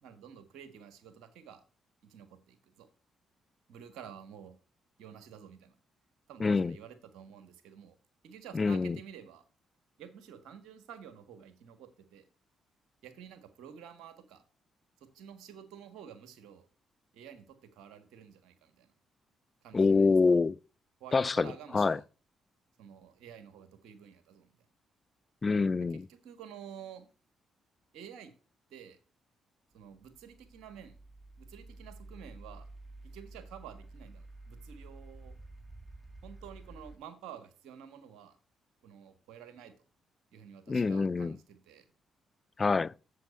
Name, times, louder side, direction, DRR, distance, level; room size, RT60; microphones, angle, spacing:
voice 1, 0.0-1.6 2.0-2.9 3.7-4.5 5.0-5.7 6.3-7.9 8.2-9.4 10.0-12.2 13.0-14.4 15.0-16.7 17.1-18.9 19.6-20.1 21.0-22.0 22.8-24.5 25.9-27.1 27.9-28.3 28.7-29.0 29.7-31.0 31.4-32.7 33.1-35.3 36.2-38.4 38.8-39.7 40.3-41.8, right 8 dB, 80° right, 1.5 m, -50 dB
voice 2, 6.4-6.8 8.5-9.0 19.7-20.6 21.1-22.0 25.4-26.1 40.7-41.4 42.6-42.9, left 4 dB, 35° left, 0.4 m, -26 dB
sound 1, 29.7-37.0, right 2 dB, 20° right, 3.9 m, -51 dB
7.7 x 7.3 x 5.5 m
supercardioid pair, 50°, 0 cm